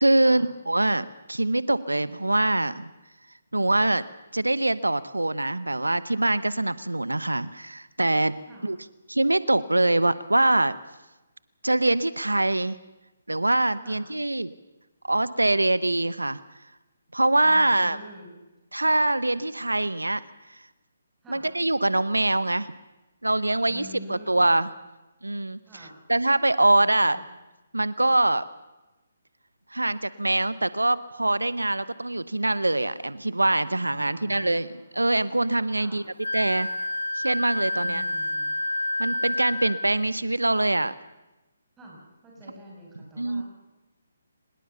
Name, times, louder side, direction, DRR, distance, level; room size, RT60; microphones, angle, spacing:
voice 1, 0.0-2.9 3.5-4.0 4.3-8.4 8.6-8.8 9.1-10.7 11.6-12.8 13.3-14.5 15.0-16.4 17.1-18.0 18.7-20.2 20.5-20.6 21.3-22.7 23.2-23.8 24.1-24.7 25.2-25.6 26.1-27.2 27.7-28.4 29.7-36.0 36.3-36.7 37.1-38.0 39.0-40.9 43.2-43.4, right 2 dB, 85° right, 17 dB, 0.9 m, -23 dB
voice 2, 17.4-18.3 21.2-21.4 23.6-24.7 25.7-25.9 26.6-27.2 34.0-34.9 35.8-36.0 37.7-38.6 41.8-43.4, equal, 10° right, -3 dB, 6.3 m, -46 dB
Wind instrument woodwind instrument, 36.2-39.9, left 2 dB, 80° left, 0.9 m, -29 dB
24.0 x 20.5 x 7.0 m, 1.1 s
figure-of-eight pair, 140°, 0 cm